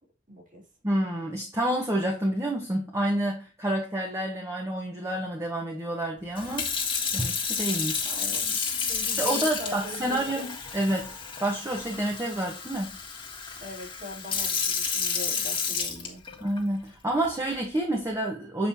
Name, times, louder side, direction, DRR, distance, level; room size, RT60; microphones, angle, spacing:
voice 1, 0.3-0.6 8.0-10.6 13.6-16.2, left 1 dB, 45° right, -1 dB, 3.2 m, -41 dB
voice 2, 0.8-6.7 7.1-8.2 9.2-12.9 16.4-18.7, right 1 dB, 15° right, 0 dB, 1.2 m, -29 dB
Sink (filling or washing) / Fill (with liquid), 6.3-16.6 17.2-17.5, left 6 dB, 25° left, 1.7 m, -31 dB
8.0 x 5.2 x 2.8 m, 0.34 s
head